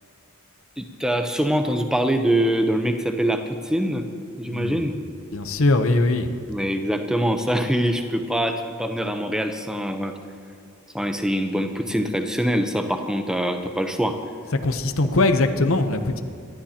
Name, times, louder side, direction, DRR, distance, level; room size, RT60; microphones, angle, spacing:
voice 1, 0.8-4.1 4.4-5.0 6.5-10.2 10.9-14.2 15.0-15.3, equal, 5° right, 5 dB, 0.7 m, -24 dB
voice 2, 4.5-4.8 5.3-6.3 14.6-16.2, left 2 dB, 70° left, 8 dB, 0.9 m, -21 dB
24.5 x 12.5 x 2.9 m, 2.3 s
head